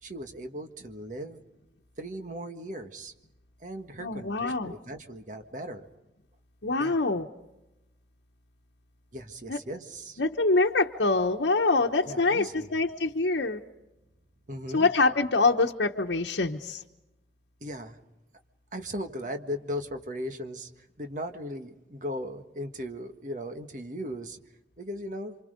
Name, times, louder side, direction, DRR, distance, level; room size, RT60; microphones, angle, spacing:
voice 1, 0.0-1.4 2.0-3.1 3.6-5.9 6.8-7.0 9.1-10.2 12.0-12.7 14.5-14.9 17.6-18.0 18.7-24.4 24.8-25.4, equal, 45° right, 6 dB, 1.6 m, -37 dB
voice 2, 4.0-4.7 6.6-7.3 9.5-9.6 10.2-13.6 14.7-16.8, left 3 dB, 80° left, 0 dB, 1.1 m, -25 dB
28.5 x 26.0 x 5.2 m, 0.96 s
head